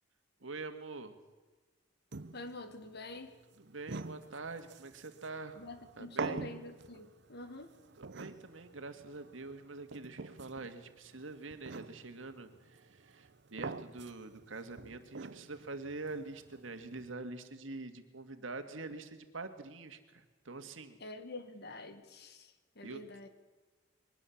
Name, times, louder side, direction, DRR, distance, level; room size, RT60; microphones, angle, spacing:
voice 1, 0.4-1.2 3.6-5.6 6.0-6.5 8.0-21.0 22.8-23.0, right 3 dB, 85° right, 8 dB, 1.9 m, -45 dB
sound 1, 2.1-17.1, right 4 dB, 60° right, 0.8 m, -46 dB
voice 2, 2.3-3.3 5.6-7.7 21.0-23.3, left 2 dB, 60° left, 9 dB, 1.9 m, -47 dB
22.5 x 19.5 x 7.2 m, 1.3 s
head